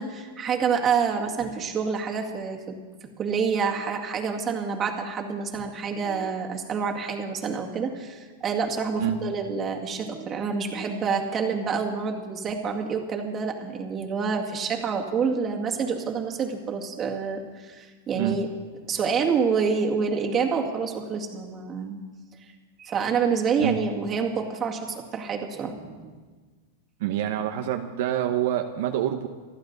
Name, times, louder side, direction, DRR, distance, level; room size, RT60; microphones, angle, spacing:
voice 1, 0.0-2.8 3.2-18.5 18.9-22.0 22.8-26.1, right 5 dB, 25° right, 1 dB, 2.1 m, -27 dB
voice 2, 27.0-29.3, right 11 dB, 65° right, 5 dB, 0.9 m, -26 dB
28.0 x 11.5 x 4.0 m, 1.4 s
supercardioid pair, 145°, 0 cm